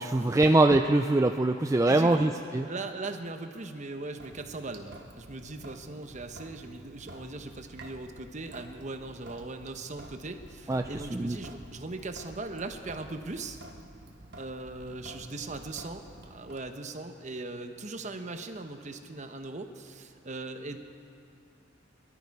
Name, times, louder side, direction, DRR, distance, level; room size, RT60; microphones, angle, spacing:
voice 1, 0.0-2.7 10.7-11.4, right 2 dB, 15° right, 6 dB, 0.3 m, -23 dB
voice 2, 1.9-2.3 2.7-13.6 14.4-20.8, right 2 dB, 35° right, 6 dB, 0.9 m, -39 dB
Sink (filling or washing) / Drip, 4.2-16.6, right 1 dB, 55° right, 1.2 m, -50 dB
23.0 x 12.5 x 4.7 m, 2.7 s
head